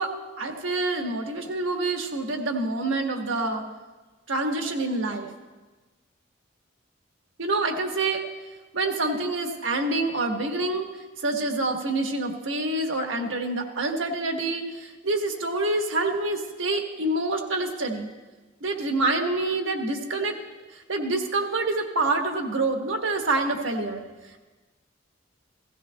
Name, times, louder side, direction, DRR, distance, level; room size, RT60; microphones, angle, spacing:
voice 1, 0.0-3.6 4.3-5.3 7.4-8.2 8.7-10.9 11.2-18.1 18.6-20.4 20.7-24.0, right 2 dB, 75° right, 3 dB, 1.3 m, -27 dB
16.5 x 16.0 x 2.2 m, 1.2 s
head